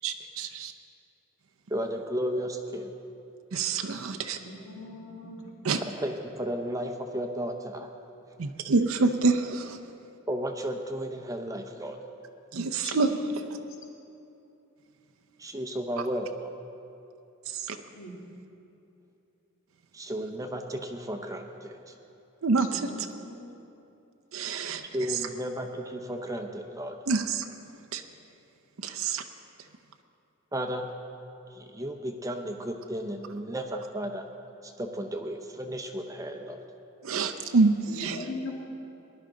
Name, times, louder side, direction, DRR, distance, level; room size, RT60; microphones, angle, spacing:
voice 1, 0.0-0.7 3.5-4.4 5.6-5.8 8.4-9.6 12.5-13.1 17.5-17.8 22.4-22.8 24.3-24.8 27.1-27.4 27.9-28.0 28.8-29.2 37.0-38.2, right 4 dB, 80° right, 6 dB, 0.6 m, -26 dB
voice 2, 1.7-2.9 6.0-7.9 10.3-12.0 15.4-16.5 19.9-21.9 24.9-27.0 30.5-30.9 31.6-34.2 34.6-36.6, equal, 15° right, 4 dB, 0.7 m, -33 dB
voice 3, 4.3-5.6 9.1-9.3 12.8-13.1 17.9-18.2 22.6-23.6 37.9-38.5, left 2 dB, 70° left, -1 dB, 1.9 m, -40 dB
19.5 x 11.0 x 3.8 m, 2.8 s
head